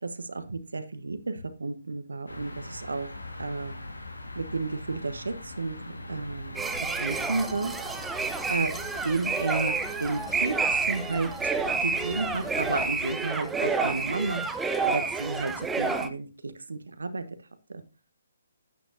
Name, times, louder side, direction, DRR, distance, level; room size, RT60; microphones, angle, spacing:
voice 1, 0.0-3.1 3.4-3.7 4.3-6.6 7.0-7.7 8.5-8.7 9.0-11.3 11.8-14.4 14.9-17.2 17.7-17.8, right 3 dB, 70° right, 10 dB, 1.2 m, -32 dB
sound 1, 2.3-13.0, left 2 dB, 80° left, 1.7 m, -42 dB
sound 2, 6.5-16.1, right 4 dB, 5° right, 0.7 m, -29 dB
11.5 x 9.2 x 2.7 m, 0.29 s
figure-of-eight pair, 135°, 0 cm